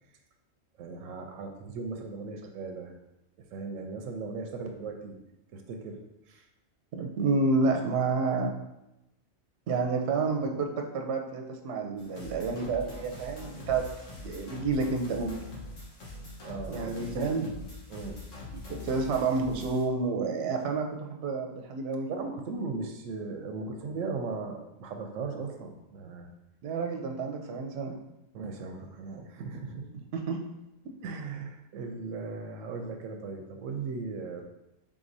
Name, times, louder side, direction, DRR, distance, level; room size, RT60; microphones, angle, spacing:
voice 1, 0.8-2.9 3.4-5.2 5.5-6.0 6.3-6.4 7.6-7.8 16.4-17.1 17.9-18.2 22.1-26.3 28.3-30.0 31.0-34.4, right 4 dB, 85° right, 4 dB, 1.0 m, -38 dB
voice 2, 6.9-8.5 9.7-13.8 14.1-15.4 16.7-17.5 18.5-22.1 26.6-28.0 30.1-30.4 31.1-31.2, right 4 dB, 65° right, 3 dB, 0.8 m, -29 dB
sound 1, 12.0-19.8, left 2 dB, 75° left, 1.5 m, -43 dB
4.8 x 3.6 x 2.6 m, 0.90 s
omnidirectional pair, 1.3 m